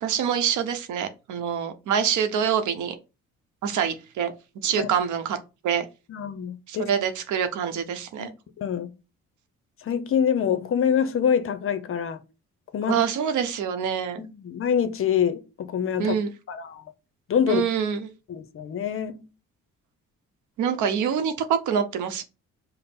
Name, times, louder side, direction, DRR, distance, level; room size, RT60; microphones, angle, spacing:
voice 1, 0.0-3.0 3.6-4.3 4.6-5.4 5.6-5.9 6.7-8.3 12.9-14.2 16.0-16.3 17.5-18.1 20.6-22.2, right 8 dB, 75° right, 0.8 m, -25 dB
voice 2, 6.1-6.9 8.2-8.9 9.8-12.2 12.7-13.0 14.2-16.1 16.5-16.8 17.3-17.6 18.3-19.2, left 8 dB, 45° left, 0.6 m, -25 dB
5.2 x 2.0 x 4.2 m
cardioid pair, 90°, 30 cm